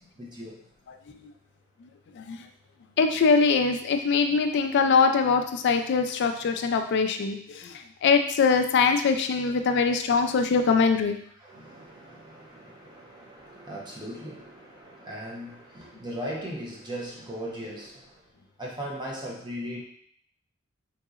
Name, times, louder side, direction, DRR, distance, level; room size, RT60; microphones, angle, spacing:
voice 1, 0.2-0.6 9.5-9.9 10.2-10.3 11.4-18.1 18.6-19.8, equal, 20° right, -3 dB, 0.8 m, -38 dB
voice 2, 0.9-1.3 2.1-2.5 3.0-11.2, left 5 dB, 55° left, 6 dB, 0.3 m, -23 dB
3.9 x 2.8 x 2.4 m, 0.62 s
head